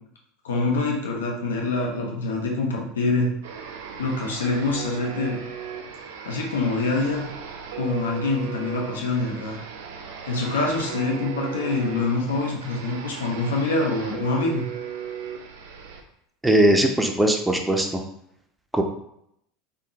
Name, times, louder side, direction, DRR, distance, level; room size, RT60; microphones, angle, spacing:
voice 1, 0.4-3.3 4.0-5.4 6.2-7.2 7.8-9.6 10.2-14.6, left 3 dB, 75° left, -1 dB, 0.7 m, -25 dB
sound 1, 3.4-16.0, right 8 dB, 65° right, 0.4 m, -37 dB
voice 2, 16.4-18.0 18.7-18.8, right 1 dB, 5° right, 3 dB, 0.5 m, -19 dB
3.5 x 2.1 x 2.7 m, 0.75 s
figure-of-eight pair, 75°, 0 cm